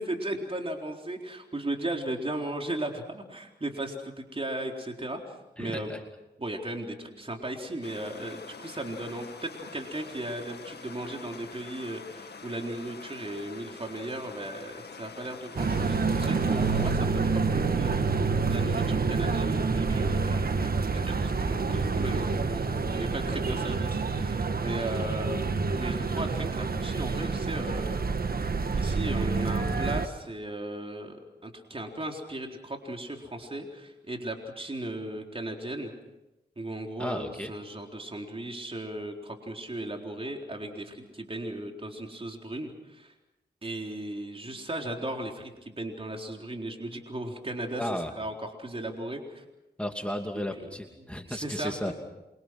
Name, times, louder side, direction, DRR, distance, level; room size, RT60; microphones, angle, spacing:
voice 1, 0.0-5.2 5.6-6.0 6.4-28.0 28.4-31.2 31.4-35.9 36.6-43.1 43.6-47.9 48.2-49.4 51.3-51.9, right 1 dB, 30° right, 2 dB, 4.0 m, -36 dB
voice 2, 5.6-6.0 37.0-37.5 47.8-48.1 49.8-51.9, left 1 dB, 5° left, 3 dB, 2.7 m, -34 dB
Stream, 7.8-16.9, left 5 dB, 70° left, 2.2 m, -46 dB
sound 1, 15.6-30.1, right 4 dB, 60° right, 1.5 m, -28 dB
28.0 x 25.0 x 6.2 m, 0.97 s
cardioid pair, 55°, 18 cm